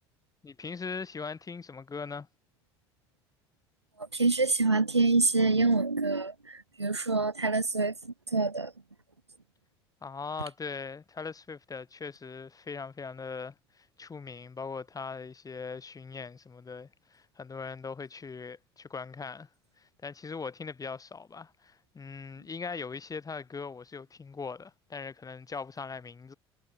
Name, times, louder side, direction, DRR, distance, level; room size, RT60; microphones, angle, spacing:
voice 1, 0.4-2.3 10.0-19.5 19.8-26.3, left 5 dB, 25° left, 6.7 m, -40 dB
voice 2, 4.1-8.7, right 3 dB, 90° right, 0.8 m, -26 dB
figure-of-eight pair, 55°, 14 cm